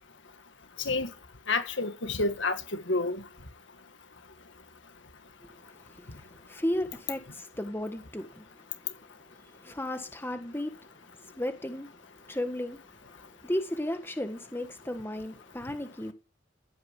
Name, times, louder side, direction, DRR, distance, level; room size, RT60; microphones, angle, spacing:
voice 1, 1.5-3.2, left 3 dB, 75° left, 1.8 m, -29 dB
voice 2, 6.5-8.4 9.6-10.7 11.4-11.9 12.3-12.8 13.4-16.1, left 1 dB, 10° left, 1.5 m, -34 dB
15.0 x 9.1 x 8.3 m
head